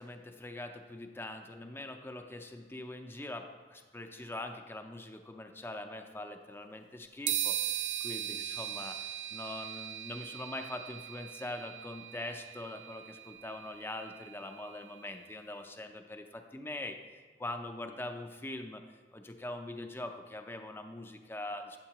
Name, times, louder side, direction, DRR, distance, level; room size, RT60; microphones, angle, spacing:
voice 1, 0.0-17.0 17.4-18.8 19.1-21.8, left 2 dB, 15° left, 5 dB, 0.4 m, -43 dB
sound 1, 7.3-14.9, right 11 dB, 80° right, 0.3 m, -39 dB
8.8 x 7.1 x 2.9 m, 1.5 s
head